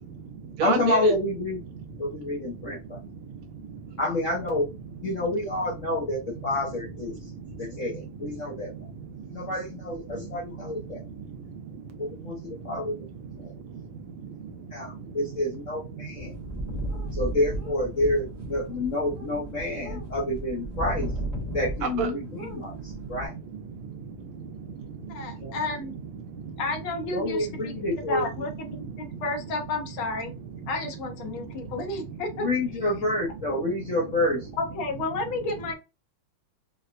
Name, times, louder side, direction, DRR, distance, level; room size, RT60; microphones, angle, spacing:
voice 1, 0.0-1.1 1.7-4.0 5.1-5.2 7.2-9.5 10.1-17.2 18.5-18.6 19.2-20.1 21.4-25.6 25.9-26.6 27.7-28.0 28.8-29.2 30.6-30.7 31.3-32.2, right 6 dB, 80° right, 1.6 m, -37 dB
voice 2, 0.6-1.6 2.0-3.0 4.0-4.7 5.0-7.2 7.6-8.7 9.3-11.0 12.0-13.1 13.4-13.5 14.7-16.3 17.1-21.1 21.5-23.3 25.4-25.6 27.1-28.2 32.4-34.5, left 1 dB, 60° left, 0.8 m, -28 dB
sound 1, 16.2-22.1 22.4-23.3, right 1 dB, 40° right, 0.5 m, -35 dB
voice 3, 25.1-26.0 26.6-27.7 28.1-30.3 30.7-32.5 34.6-35.7, left 3 dB, 75° left, 1.6 m, -31 dB
4.7 x 2.2 x 2.5 m
omnidirectional pair, 2.3 m